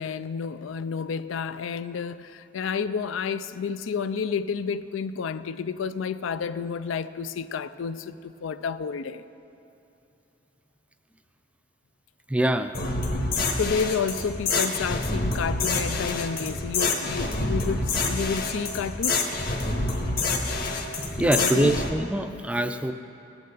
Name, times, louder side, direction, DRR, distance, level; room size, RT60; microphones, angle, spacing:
voice 1, 0.0-9.2 13.6-19.3 21.2-21.8, left 6 dB, 90° left, 0.4 m, -30 dB
voice 2, 12.3-12.7 21.2-22.9, right 1 dB, 5° right, 0.3 m, -24 dB
sound 1, 12.7-21.9, left 3 dB, 50° left, 1.1 m, -27 dB
18.0 x 8.8 x 4.0 m
head